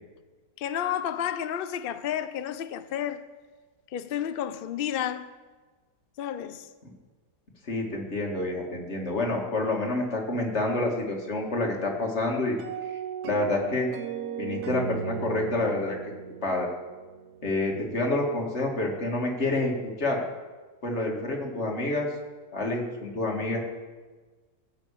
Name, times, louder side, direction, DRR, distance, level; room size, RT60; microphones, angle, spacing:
voice 1, 0.6-3.3 3.9-5.3 6.2-6.7, left 10 dB, 75° left, 0.5 m, -31 dB
voice 2, 7.7-12.6 13.2-13.9 14.4-16.0 16.4-16.7 17.4-20.2 20.8-22.1 22.5-23.6, left 2 dB, 45° left, 2.3 m, -28 dB
sound 1, 12.6-17.8, right 8 dB, 80° right, 1.4 m, -36 dB
16.0 x 6.2 x 8.4 m
omnidirectional pair, 1.7 m